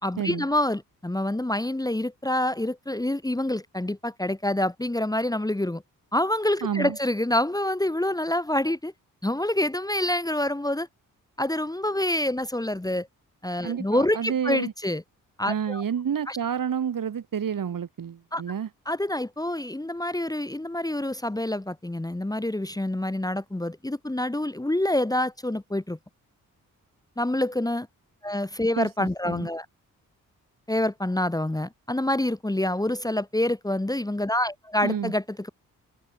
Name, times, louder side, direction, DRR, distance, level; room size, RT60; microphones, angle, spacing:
voice 1, 0.0-5.8 6.1-8.9 9.2-10.9 11.4-13.1 13.4-15.0 15.4-15.8 16.3-16.4 18.3-18.4 18.9-26.0 27.2-27.9 28.2-29.6 30.7-35.5, left 1 dB, 10° left, 1.6 m, -27 dB
voice 2, 6.6-7.0 13.6-14.7 15.4-18.7 28.8-29.5 34.8-35.1, right 8 dB, 70° right, 6.8 m, -29 dB
open air
cardioid pair, 70°, 34 cm